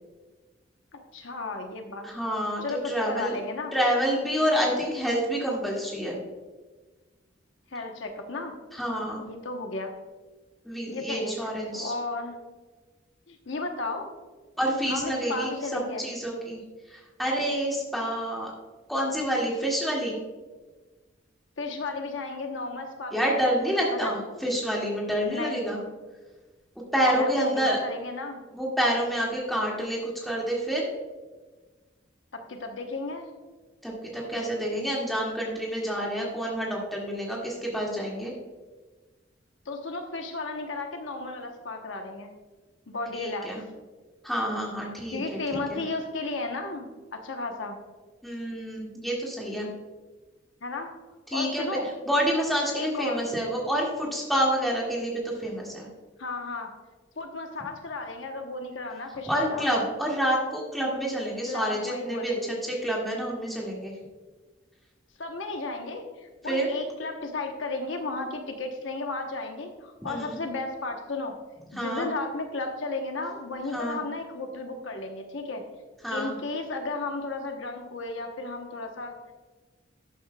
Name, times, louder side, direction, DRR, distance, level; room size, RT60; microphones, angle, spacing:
voice 1, 1.1-2.1 2.6-3.7 7.7-8.5 9.2-9.9 10.9-11.4 11.7-12.4 13.3-14.1 14.9-16.1 21.6-23.5 23.9-24.1 25.3-25.7 27.1-28.4 32.3-33.3 39.6-42.3 42.9-43.5 45.1-47.8 50.6-50.9 51.3-51.9 52.7-53.2 56.2-56.7 57.2-59.7 61.4-62.6 65.2-71.3 71.7-75.6 76.1-79.2, left 3 dB, 80° left, 4 dB, 1.0 m, -34 dB
voice 2, 2.0-3.3 3.7-6.2 8.7-9.3 10.7-11.9 14.6-16.6 16.9-18.5 18.9-20.2 23.1-25.8 26.9-27.8 28.5-30.9 33.8-38.3 43.1-43.6 44.2-45.4 45.7-45.8 48.2-49.7 51.3-51.6 52.1-55.9 59.3-63.9 66.5-66.7 70.1-70.4 71.8-72.1 73.7-74.0 76.0-76.3, equal, ahead, -4 dB, 2.0 m, -28 dB
12.0 x 8.2 x 2.3 m, 1.3 s
head